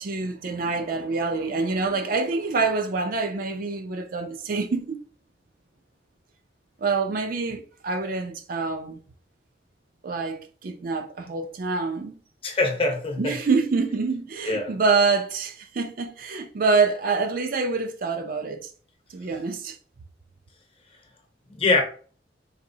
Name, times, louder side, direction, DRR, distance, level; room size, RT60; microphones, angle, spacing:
voice 1, 0.0-5.0 6.8-9.0 10.0-12.2 13.2-18.7 19.1-19.8, right 4 dB, 50° right, 0.4 m, -26 dB
voice 2, 12.4-13.4 14.4-14.7 21.5-21.8, left 3 dB, 30° left, 0.9 m, -23 dB
4.1 x 3.0 x 2.7 m
head